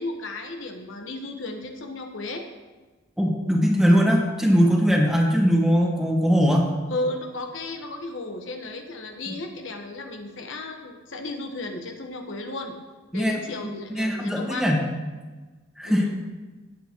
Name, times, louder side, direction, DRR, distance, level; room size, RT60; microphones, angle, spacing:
voice 1, 0.0-2.5 6.9-12.7 13.1-14.7 15.8-16.2, left 2 dB, 65° left, 3 dB, 1.3 m, -34 dB
voice 2, 3.2-6.7 9.3-9.4 13.1-13.4 13.9-14.8 15.8-16.0, equal, ahead, -1 dB, 1.6 m, -20 dB
18.0 x 8.1 x 3.1 m, 1.3 s
head